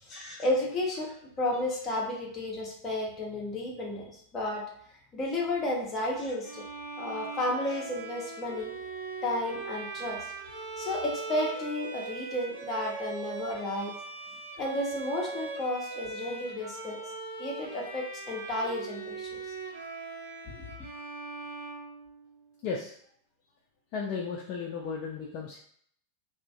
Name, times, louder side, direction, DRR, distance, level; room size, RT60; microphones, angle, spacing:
voice 1, 0.0-4.6 5.1-6.6 7.0-8.7 9.2-10.3 10.8-14.0 14.6-17.0 17.4-19.4 20.5-20.6, left 1 dB, 25° left, -2 dB, 0.7 m, -32 dB
Bowed string instrument, 6.4-22.5, right 4 dB, 70° right, 0.7 m, -40 dB
voice 2, 22.6-22.9 23.9-25.6, left 5 dB, 40° left, -2 dB, 0.3 m, -35 dB
2.4 x 2.1 x 2.5 m, 0.63 s
figure-of-eight pair, 90°, 0 cm